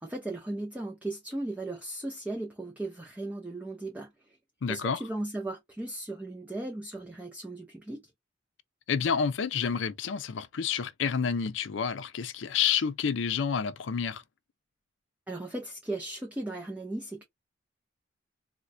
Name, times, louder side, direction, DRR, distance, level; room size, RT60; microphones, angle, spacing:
voice 1, 0.0-4.4 4.7-8.0 15.3-17.2, right 2 dB, 10° right, 0.5 m, -37 dB
voice 2, 4.6-5.0 8.9-14.2, left 7 dB, 70° left, 0.5 m, -29 dB
4.3 x 2.1 x 2.5 m
head